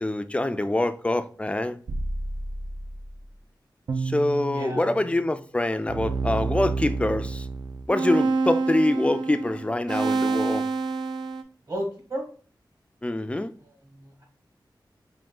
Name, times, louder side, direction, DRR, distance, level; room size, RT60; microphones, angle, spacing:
voice 1, 0.0-1.8 4.0-7.5 7.9-10.7 13.0-13.5, left 1 dB, 15° left, 0.3 m, -25 dB
sound 1, 1.9-3.2 3.9-5.3 5.9-11.4, right 3 dB, 65° right, 0.5 m, -28 dB
voice 2, 4.5-4.9 11.7-12.3 13.6-14.2, equal, 45° right, 1.5 m, -34 dB
3.6 x 2.5 x 3.7 m
wide cardioid pair, 80°, 8 cm